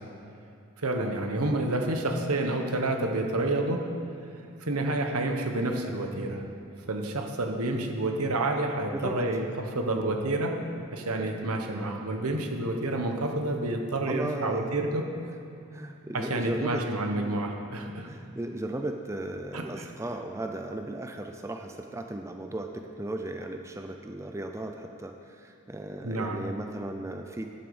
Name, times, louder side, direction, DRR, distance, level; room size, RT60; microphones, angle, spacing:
voice 1, 0.8-3.8 4.6-6.4 6.9-9.5 9.7-10.6 10.9-15.0 16.1-18.1 19.5-19.8 26.0-26.4, right 2 dB, 80° right, 3 dB, 1.3 m, -29 dB
voice 2, 8.9-9.2 14.1-14.8 15.7-16.8 18.1-27.5, right 1 dB, 15° right, 5 dB, 0.4 m, -36 dB
10.5 x 8.2 x 7.1 m, 2.5 s
head